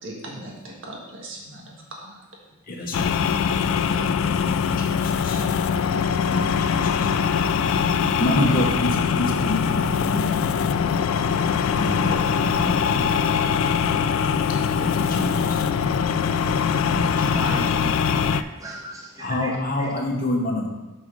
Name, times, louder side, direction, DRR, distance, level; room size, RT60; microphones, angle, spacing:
voice 1, 0.0-2.1 3.9-4.6, right 1 dB, 65° right, -1 dB, 1.6 m, -39 dB
voice 2, 2.7-3.3 4.4-5.4 6.3-7.1 8.2-10.3 11.8-13.1 14.8-15.6 16.9-17.4 19.2-20.7, left 1 dB, 45° left, 1 dB, 1.1 m, -28 dB
sound 1, 2.9-18.4, left 6 dB, 75° left, 0.3 m, -22 dB
voice 3, 17.2-17.8 18.3-20.0, right 1 dB, 15° right, -1 dB, 0.8 m, -36 dB
6.1 x 5.5 x 5.3 m, 1.1 s
head